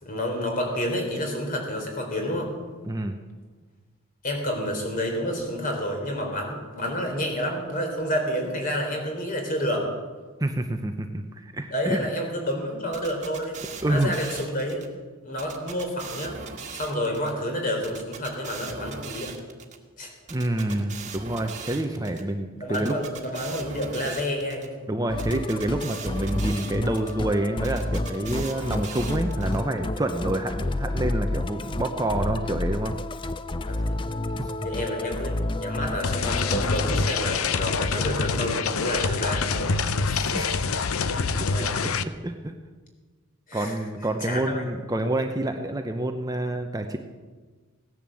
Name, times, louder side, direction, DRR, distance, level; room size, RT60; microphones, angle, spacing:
voice 1, 0.0-2.5 4.2-9.9 11.7-13.6 13.9-14.8 15.2-16.4 16.7-19.4 20.0-20.1 22.5-24.8 33.7-34.0 34.6-39.8 41.5-41.9 43.5-43.7 44.2-44.7, equal, 40° left, 2 dB, 3.8 m, -29 dB
voice 2, 2.8-3.2 10.4-12.1 13.8-14.1 20.3-22.9 24.9-32.9 34.4-34.7 40.1-42.5 43.5-47.0, right 1 dB, 15° right, 5 dB, 0.7 m, -28 dB
sound 1, 12.9-14.9 15.4-17.3 17.8-19.8 20.3-22.2 22.7-24.7 25.2-27.1 27.6-29.6, right 5 dB, 35° right, 1.7 m, -40 dB
Musical instrument, 25.1-37.0, left 2 dB, 25° left, 0.5 m, -30 dB
sound 2, 36.0-42.0, left 4 dB, 80° left, 0.7 m, -26 dB
17.0 x 10.5 x 7.6 m, 1.4 s
head